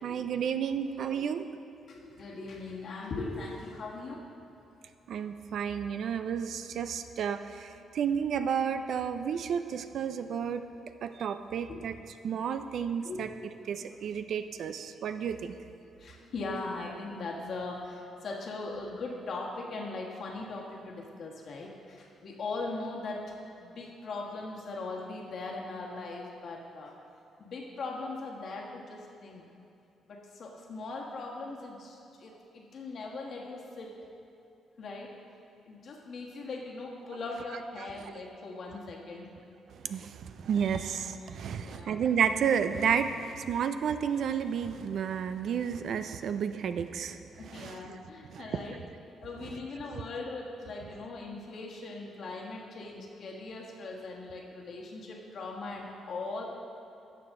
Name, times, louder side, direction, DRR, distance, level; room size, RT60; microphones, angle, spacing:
voice 1, 0.0-1.5 5.1-7.7 7.9-10.6 11.0-11.9 12.2-13.3 13.7-15.5 39.8-47.2 47.5-48.0 48.3-48.4 49.9-50.0, right 7 dB, 65° right, 10 dB, 0.4 m, -31 dB
voice 2, 1.9-4.4 10.7-10.8 11.7-11.9 13.0-13.4 16.0-26.9 27.4-29.4 30.1-33.9 34.8-35.1 35.7-39.3 41.5-42.1 47.4-48.8 49.2-56.5, left 3 dB, 60° left, -1 dB, 1.5 m, -40 dB
12.0 x 6.8 x 3.7 m, 2.8 s
cardioid pair, 90°, 0 cm